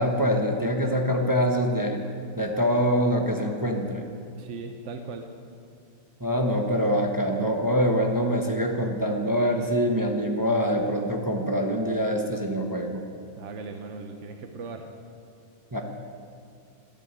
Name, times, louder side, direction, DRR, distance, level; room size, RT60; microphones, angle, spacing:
voice 1, 0.0-2.0 2.4-4.0 6.2-13.0 15.7-15.8, equal, 20° right, 2 dB, 0.6 m, -24 dB
voice 2, 4.4-5.3 13.4-14.9, right 4 dB, 50° right, 5 dB, 0.9 m, -38 dB
12.5 x 11.5 x 8.1 m, 2.3 s
omnidirectional pair, 2.2 m